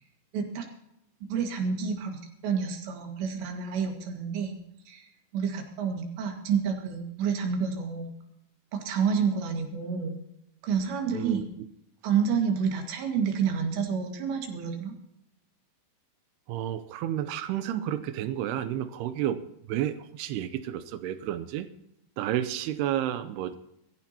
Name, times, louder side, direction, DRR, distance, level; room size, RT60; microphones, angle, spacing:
voice 1, 0.3-0.7 1.3-2.2 2.4-4.6 4.9-5.1 5.3-8.1 8.7-10.2 10.6-11.4 12.0-15.0, right 6 dB, 70° right, 3 dB, 4.1 m, -29 dB
voice 2, 11.1-11.7 16.5-21.7 22.2-23.6, right 11 dB, 85° right, 11 dB, 2.4 m, -31 dB
22.0 x 14.5 x 2.9 m, 0.81 s
omnidirectional pair, 5.4 m